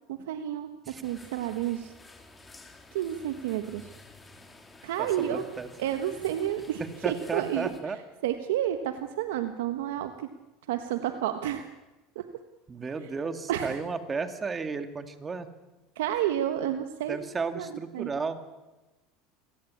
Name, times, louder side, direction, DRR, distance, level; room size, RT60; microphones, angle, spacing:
voice 1, 0.1-1.9 2.9-3.9 4.8-5.4 5.8-7.7 8.2-10.3 10.7-11.7 12.1-12.2 13.5-13.8 15.9-17.2 17.5-17.7 17.9-18.1, right 11 dB, 85° right, 8 dB, 1.4 m, -30 dB
sound 1, 1.0-7.8, left 2 dB, 15° left, 3.5 m, -51 dB
voice 2, 5.0-5.7 7.0-8.0 12.7-15.5 17.1-18.4, right 4 dB, 20° right, 8 dB, 2.4 m, -33 dB
26.5 x 17.5 x 8.5 m, 1.1 s
supercardioid pair, 115°, 0 cm